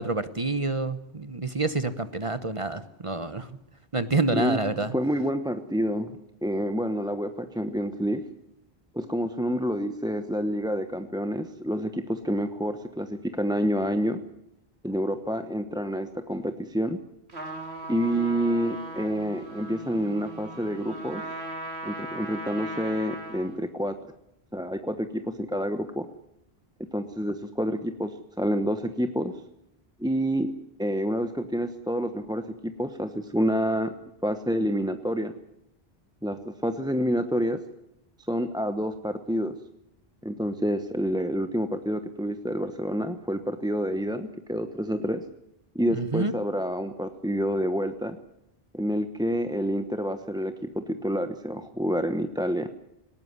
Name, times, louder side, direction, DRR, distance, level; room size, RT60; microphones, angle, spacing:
voice 1, 0.0-3.6 3.9-4.9 45.9-46.3, right 3 dB, 30° right, 12 dB, 1.0 m, -28 dB
voice 2, 4.9-8.2 8.9-14.2 14.8-17.0 17.9-21.2 21.8-24.1 24.5-26.1 26.9-29.3 30.0-30.5 30.8-33.9 34.2-35.3 36.2-37.6 38.3-39.6 40.2-45.2 45.7-48.2 48.7-52.7, equal, 5° right, 8 dB, 0.9 m, -28 dB
Trumpet, 17.3-23.6, right 2 dB, 80° right, 3.4 m, -38 dB
19.0 x 18.0 x 9.7 m, 0.81 s
omnidirectional pair, 1.1 m